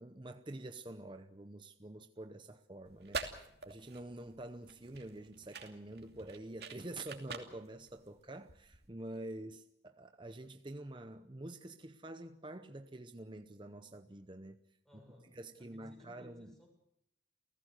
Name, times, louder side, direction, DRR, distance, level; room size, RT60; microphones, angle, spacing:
voice 1, 0.0-14.6 15.3-16.6, right 1 dB, 25° right, 0.8 m, -47 dB
sound 1, 2.8-8.9, right 4 dB, 55° right, 2.7 m, -46 dB
voice 2, 14.9-15.3 15.6-16.7, left 1 dB, 5° left, 7.0 m, -60 dB
30.0 x 16.0 x 6.6 m
head